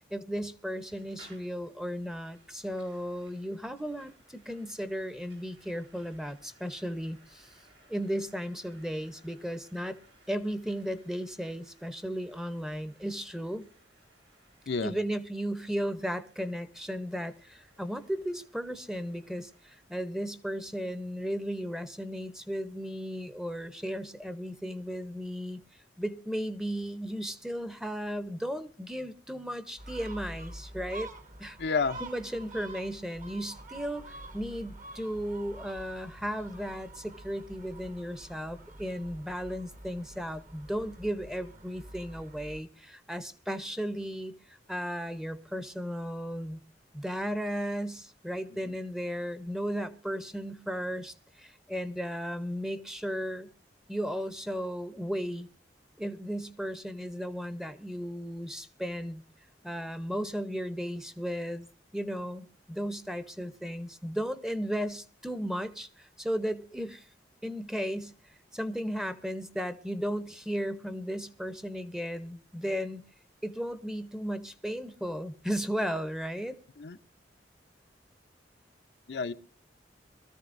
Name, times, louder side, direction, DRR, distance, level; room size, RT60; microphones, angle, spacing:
voice 1, 0.1-7.5 7.9-10.0 10.3-13.6 14.8-25.6 26.0-31.1 31.4-31.6 32.0-46.6 46.9-53.5 53.9-55.5 56.0-59.2 59.6-61.7 61.9-67.1 67.4-68.1 68.5-73.0 73.4-76.6, equal, 5° right, 0.7 m, -35 dB
sound 1, 0.9-20.0, right 2 dB, 90° right, 7.7 m, -63 dB
Gull seagull, 29.8-42.6, right 2 dB, 45° right, 1.3 m, -47 dB
voice 2, 31.6-32.0 76.8-77.0 79.1-79.3, left 4 dB, 70° left, 0.6 m, -29 dB
24.0 x 13.5 x 2.5 m
head